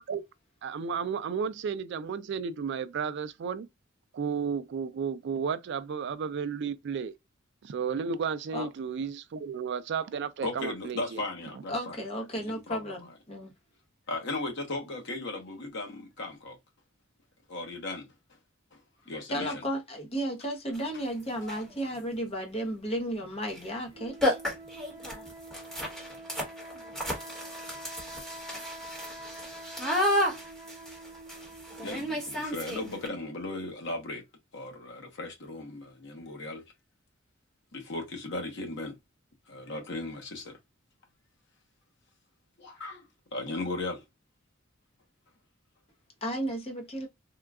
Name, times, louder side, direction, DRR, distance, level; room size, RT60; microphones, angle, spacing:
voice 1, 0.6-3.7 4.1-7.1 7.6-11.2, right 6 dB, 60° right, 0.3 m, -33 dB
voice 2, 10.4-12.0 12.3-13.0 14.1-16.6 17.5-18.1 18.7-18.8 19.1-19.6 31.8-34.2 34.5-36.6 37.7-39.0 39.5-40.6 42.6-43.0 43.3-44.0, left 2 dB, 60° left, 1.0 m, -36 dB
voice 3, 11.7-13.5 19.3-24.4 46.2-47.1, equal, 30° left, 0.8 m, -34 dB
sound 1, 20.7-20.8 21.4-21.7 23.5-23.6 23.9-24.0 24.2-33.1, left 1 dB, 5° left, 1.1 m, -32 dB
sound 2, 23.9-33.6, right 1 dB, 20° right, 0.7 m, -46 dB
3.7 x 2.3 x 2.3 m
head